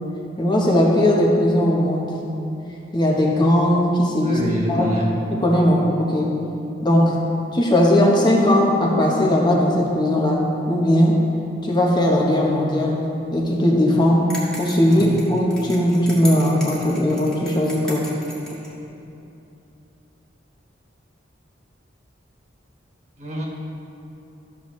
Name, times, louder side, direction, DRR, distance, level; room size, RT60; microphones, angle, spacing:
voice 1, 0.4-2.1 2.9-4.4 4.7-4.9 5.3-6.3 6.8-7.2 7.5-11.2 11.6-13.0 13.3-14.3 14.6-18.1, left 1 dB, 25° left, -2 dB, 1.0 m, -18 dB
voice 2, 4.2-5.1 14.8-15.1 23.2-23.4, equal, 40° right, -3 dB, 1.6 m, -26 dB
sound 1, 14.3-18.7, left 1 dB, 5° left, 1.6 m, -36 dB
12.5 x 6.7 x 3.2 m, 2.9 s
head